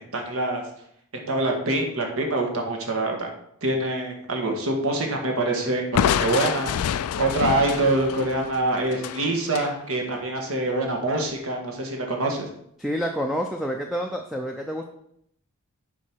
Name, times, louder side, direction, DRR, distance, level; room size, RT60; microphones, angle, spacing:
voice 1, 0.1-0.6 1.3-3.3 3.6-12.5, right 2 dB, 70° right, 2 dB, 1.5 m, -25 dB
Crushing, 5.9-9.7, left 8 dB, 85° left, 0.3 m, -27 dB
voice 2, 12.8-14.9, equal, ahead, 2 dB, 0.4 m, -28 dB
7.4 x 4.9 x 4.5 m, 0.71 s
head